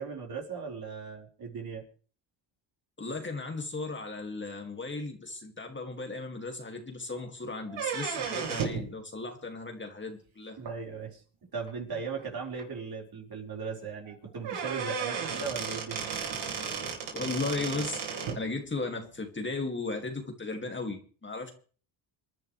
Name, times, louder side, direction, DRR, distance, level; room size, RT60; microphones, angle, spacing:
voice 1, 0.0-1.8 10.6-11.2 11.5-16.4, right 5 dB, 45° right, 0 dB, 4.7 m, -38 dB
voice 2, 3.0-10.6 11.9-12.0 17.1-21.5, left 3 dB, 25° left, 3 dB, 2.4 m, -36 dB
sound 1, 7.7-8.9 10.6-10.7 11.7-11.8 12.2-12.3 12.6-12.7 14.1-14.2 14.4-18.4, right 6 dB, 70° right, 4.1 m, -34 dB
27.0 x 10.5 x 3.3 m, 0.41 s
cardioid pair, 95°, 49 cm